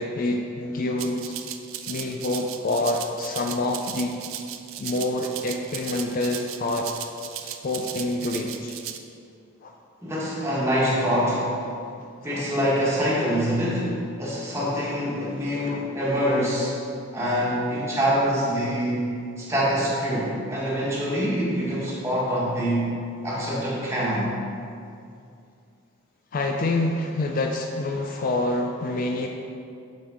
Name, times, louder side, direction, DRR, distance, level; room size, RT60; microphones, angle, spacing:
voice 1, 0.0-1.4 1.9-4.2 4.8-6.9 7.4-8.7 9.6-9.7 12.3-12.4 15.7-15.8 26.3-29.3, left 2 dB, 45° left, 3 dB, 0.4 m, -27 dB
Rattle (instrument), 1.0-9.0, right 10 dB, 80° right, 0.4 m, -37 dB
voice 2, 10.0-11.6 12.2-16.7 17.1-23.0 23.2-24.3, equal, 15° right, -7 dB, 1.5 m, -25 dB
6.6 x 6.1 x 3.7 m, 2.4 s
head